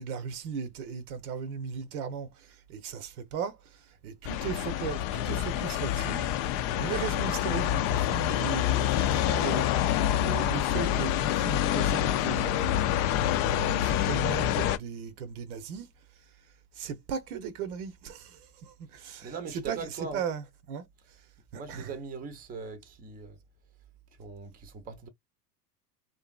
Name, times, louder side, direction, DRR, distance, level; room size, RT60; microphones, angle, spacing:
voice 1, 0.0-15.9 16.7-20.9 21.5-22.0, right 7 dB, 70° right, 0.8 m, -37 dB
sound 1, 4.2-14.8, left 11 dB, 50° left, 0.5 m, -27 dB
voice 2, 19.2-20.2 21.5-23.4 24.2-25.1, right 5 dB, 20° right, 0.6 m, -40 dB
2.7 x 2.5 x 2.2 m
hypercardioid pair, 90°, 47 cm